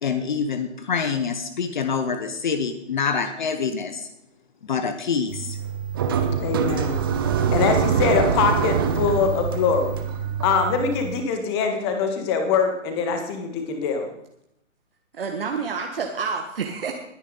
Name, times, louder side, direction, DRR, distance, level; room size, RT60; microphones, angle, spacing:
voice 1, 0.0-4.1 4.6-5.6, left 5 dB, 35° left, 9 dB, 1.0 m, -26 dB
sound 1, 5.3-11.2, right 7 dB, 20° right, 0.7 m, -24 dB
voice 2, 6.4-7.0 7.5-10.0 10.4-14.1, left 5 dB, 20° left, 6 dB, 1.5 m, -23 dB
voice 3, 15.1-16.9, right 5 dB, 45° right, 3 dB, 1.5 m, -28 dB
20.0 x 9.9 x 3.9 m, 0.78 s
figure-of-eight pair, 135°, 39 cm